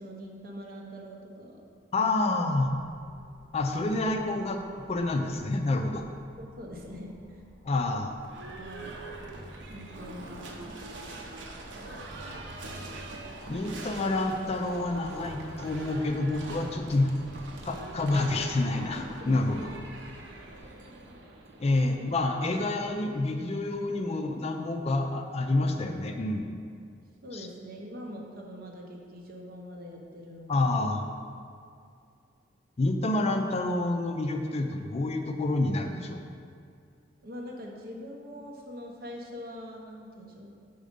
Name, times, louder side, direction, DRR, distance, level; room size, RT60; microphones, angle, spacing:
voice 1, 0.0-1.6 6.4-7.4 8.6-8.9 9.7-10.9 19.2-19.7 21.7-21.8 27.2-30.7 37.2-40.6, equal, 55° right, 0 dB, 0.8 m, -43 dB
voice 2, 1.9-2.7 3.5-6.0 7.7-8.2 13.5-17.1 17.6-19.6 21.6-26.5 27.3-27.5 30.5-31.0 32.8-36.2, left 2 dB, 35° left, 4 dB, 0.4 m, -28 dB
sound 1, 2.6-20.6, equal, ahead, 1.6 m, -50 dB
Livestock farm animals working animals / Bell, 8.2-24.1, right 2 dB, 90° right, 0.7 m, -44 dB
5.1 x 4.2 x 5.1 m, 2.3 s
head